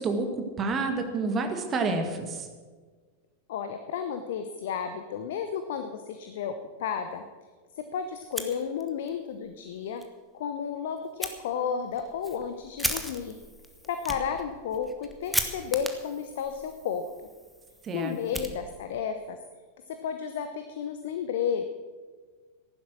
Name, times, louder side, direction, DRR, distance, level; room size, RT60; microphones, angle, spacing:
voice 1, 0.0-2.5 17.8-18.2, right 3 dB, 25° right, 6 dB, 2.0 m, -29 dB
voice 2, 3.5-7.2 7.8-10.0 10.3-13.4 13.8-17.1 17.9-19.4 19.9-21.7, left 7 dB, 55° left, 8 dB, 0.9 m, -32 dB
Fire, 8.2-9.1 9.5-9.6 10.0-10.1 11.2-11.3 11.9-19.1, equal, ahead, 1.3 m, -36 dB
14.5 x 11.5 x 6.3 m, 1.5 s
figure-of-eight pair, 90°, 0 cm